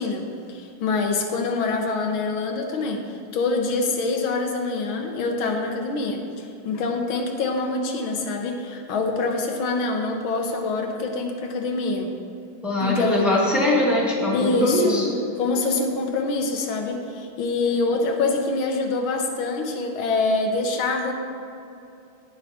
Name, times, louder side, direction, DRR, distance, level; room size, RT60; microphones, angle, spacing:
voice 1, 0.0-12.2 12.8-13.3 14.3-15.1 15.4-21.1, left 3 dB, 85° left, 3 dB, 1.8 m, -25 dB
voice 2, 12.6-15.1 17.6-17.7, left 1 dB, ahead, -5 dB, 1.7 m, -22 dB
16.0 x 5.6 x 4.3 m, 2.6 s
omnidirectional pair, 2.2 m